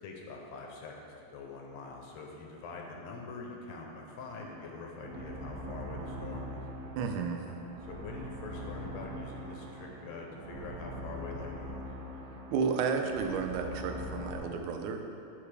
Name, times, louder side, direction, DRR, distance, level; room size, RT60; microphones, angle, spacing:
voice 1, 0.0-6.5 7.9-11.8, left 3 dB, 75° left, 0 dB, 1.9 m, -44 dB
sound 1, 4.4-14.4, equal, 70° right, 1.1 m, -42 dB
voice 2, 7.0-7.4 12.5-15.0, right 5 dB, 90° right, 4 dB, 2.1 m, -32 dB
12.0 x 4.8 x 3.4 m, 2.8 s
omnidirectional pair, 3.3 m